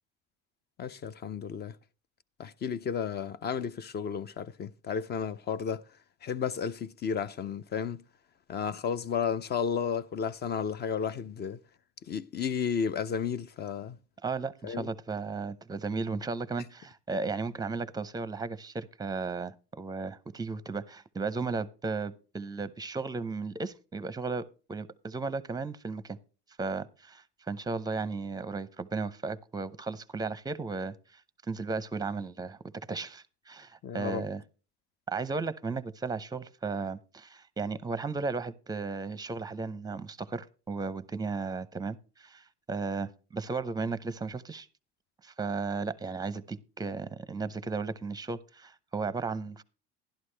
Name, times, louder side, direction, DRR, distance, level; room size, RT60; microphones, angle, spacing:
voice 1, 0.8-1.7 2.4-5.8 6.2-8.0 8.5-11.6 12.1-14.0 14.6-14.9 33.8-34.2, left 7 dB, 30° left, 0.5 m, -33 dB
voice 2, 14.2-26.2 26.6-31.2 31.5-32.6 32.9-34.4 35.1-44.7 45.2-49.6, right 4 dB, 10° right, 0.7 m, -35 dB
11.5 x 11.0 x 3.3 m
supercardioid pair, 100°, 31 cm